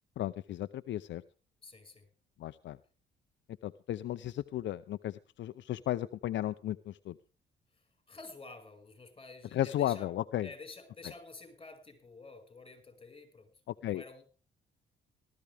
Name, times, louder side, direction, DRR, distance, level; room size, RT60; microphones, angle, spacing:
voice 1, 0.2-1.2 2.4-2.8 3.6-7.2 9.5-10.5 13.7-14.0, left 13 dB, 65° left, 13 dB, 0.6 m, -34 dB
voice 2, 1.6-2.1 7.7-10.1 10.4-13.5 13.8-14.3, left 3 dB, 25° left, 7 dB, 5.5 m, -50 dB
19.0 x 13.5 x 3.5 m, 0.36 s
cardioid pair, 90°, 20 cm